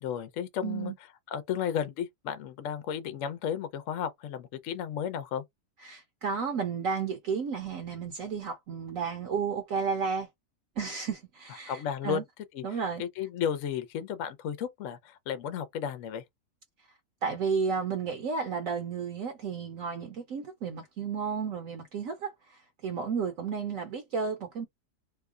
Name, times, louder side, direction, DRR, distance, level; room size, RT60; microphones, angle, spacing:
voice 1, 0.0-0.9 1.3-5.4 11.7-12.2 12.5-16.2, left 8 dB, 65° left, 0.9 m, -33 dB
voice 2, 0.6-0.9 5.8-10.3 10.8-12.2 12.6-13.0 17.2-24.7, right 5 dB, 65° right, 1.0 m, -32 dB
2.8 x 2.2 x 3.6 m
omnidirectional pair, 1.7 m